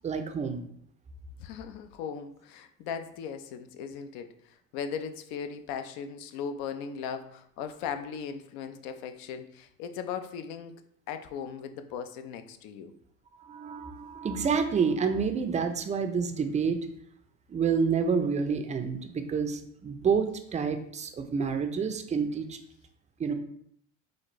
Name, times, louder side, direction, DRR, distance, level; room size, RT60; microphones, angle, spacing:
voice 1, 0.0-0.7 13.4-16.8 17.5-22.6 23.2-23.3, right 6 dB, 20° right, 7 dB, 0.4 m, -28 dB
voice 2, 1.4-10.7 11.1-12.9, left 7 dB, 75° left, 8 dB, 0.5 m, -38 dB
4.2 x 2.5 x 3.0 m, 0.68 s
supercardioid pair, 95°, 37 cm